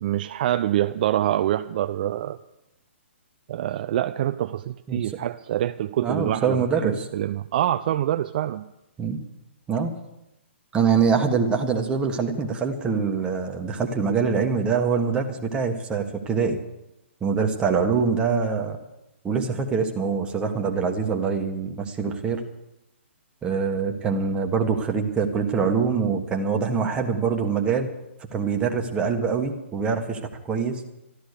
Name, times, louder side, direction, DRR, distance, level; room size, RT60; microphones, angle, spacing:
voice 1, 0.0-2.4 3.5-8.6, right 12 dB, 45° right, 10 dB, 0.5 m, -25 dB
voice 2, 6.0-7.1 9.0-9.2 9.7-9.9 10.7-16.6 17.2-18.8 19.2-22.4 23.4-27.9 28.3-30.2 30.4-30.8, right 5 dB, 15° right, 3 dB, 1.5 m, -24 dB
13.0 x 13.0 x 6.8 m, 0.92 s
hypercardioid pair, 140°, 7 cm